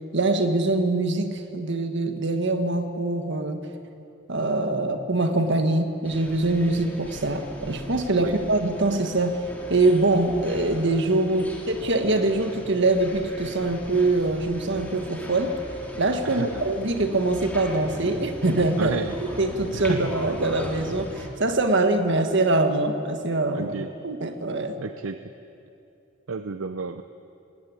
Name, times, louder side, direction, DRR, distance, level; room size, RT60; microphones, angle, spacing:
voice 1, 0.1-3.7 4.3-9.4 9.7-15.5 16.0-19.0 19.4-23.7 24.0-24.8, right 2 dB, 60° right, 7 dB, 1.6 m, -23 dB
sound 1, 6.0-21.3, equal, 10° left, 2.8 m, -39 dB
voice 2, 16.2-16.6 18.8-19.1 19.7-20.1 23.5-23.9 24.8-25.2 26.3-27.0, right 4 dB, 75° right, 9 dB, 0.7 m, -31 dB
20.0 x 17.5 x 8.8 m, 2.8 s
head